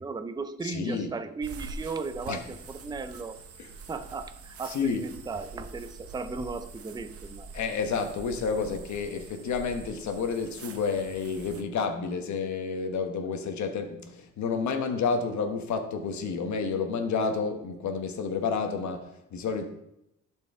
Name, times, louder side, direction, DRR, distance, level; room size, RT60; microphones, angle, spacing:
voice 1, 0.0-3.4 3.9-7.5, right 4 dB, 15° right, 10 dB, 0.5 m, -36 dB
voice 2, 0.6-1.1 2.3-2.4 4.7-5.0 7.5-19.7, left 5 dB, 70° left, 6 dB, 1.2 m, -30 dB
sound 1, 1.4-11.6, right 3 dB, 50° right, 0.8 m, -45 dB
12.0 x 4.6 x 3.5 m, 0.83 s
cardioid pair, 90°, 30 cm